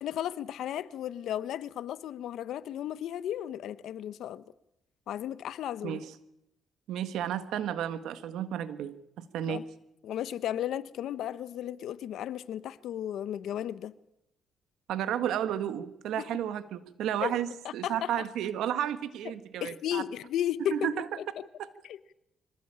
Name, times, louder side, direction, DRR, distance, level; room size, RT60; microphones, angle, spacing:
voice 1, 0.0-4.4 5.1-6.0 9.5-9.6 10.0-13.9 16.2-16.3 17.2-17.3 17.6-18.1 19.6-20.9 21.2-21.4 21.8-22.1, left 11 dB, 75° left, 1.0 m, -34 dB
voice 2, 6.9-9.6 14.9-20.0 20.7-21.0 21.6-21.7, right 10 dB, 85° right, 1.5 m, -32 dB
24.5 x 17.0 x 8.8 m
cardioid pair, 90°, 0 cm